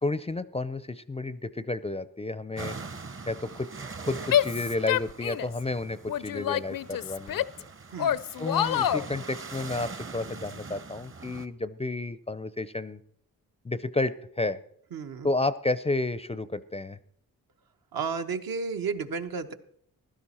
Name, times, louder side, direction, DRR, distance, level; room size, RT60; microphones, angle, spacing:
voice 1, 0.0-2.8 3.3-3.7 4.0-7.7 8.4-13.0 13.6-14.6 15.2-17.0, left 2 dB, 15° left, 15 dB, 0.5 m, -31 dB
sound 1, 2.6-11.5, right 4 dB, 35° right, 0.9 m, -42 dB
Female speech woman speaking / Yell, 4.3-5.6 6.1-7.6 8.0-9.1, left 10 dB, 65° left, 0.5 m, -27 dB
voice 2, 14.9-15.3 17.9-19.5, right 5 dB, 65° right, 6 dB, 1.1 m, -32 dB
15.5 x 12.5 x 4.3 m, 0.67 s
cardioid pair, 80°, 37 cm